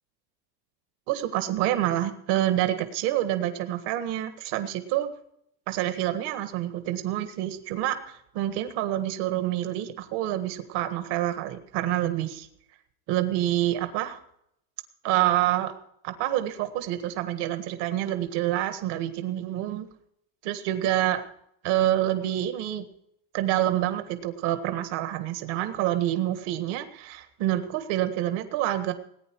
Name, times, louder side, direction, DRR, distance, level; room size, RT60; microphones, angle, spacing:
voice 1, 1.1-5.1 5.7-12.5 13.1-14.2 15.0-15.8 16.0-19.9 20.4-21.2 21.6-22.9 23.3-28.9, right 13 dB, 65° right, 7 dB, 1.8 m, -27 dB
19.0 x 9.8 x 4.7 m, 0.74 s
cardioid pair, 160°, 45 cm